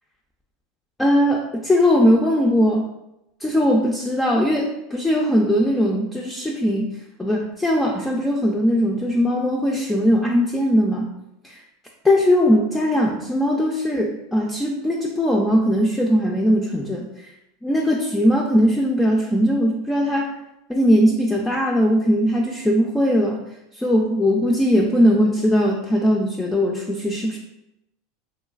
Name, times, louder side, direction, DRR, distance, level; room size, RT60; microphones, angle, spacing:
voice 1, 1.0-2.9 3.4-6.9 7.2-11.1 12.0-17.3 17.6-20.3 20.7-23.4 23.8-27.4, equal, 10° left, -1 dB, 0.3 m, -19 dB
3.0 x 2.6 x 2.3 m, 0.88 s
supercardioid pair, 125°, 0 cm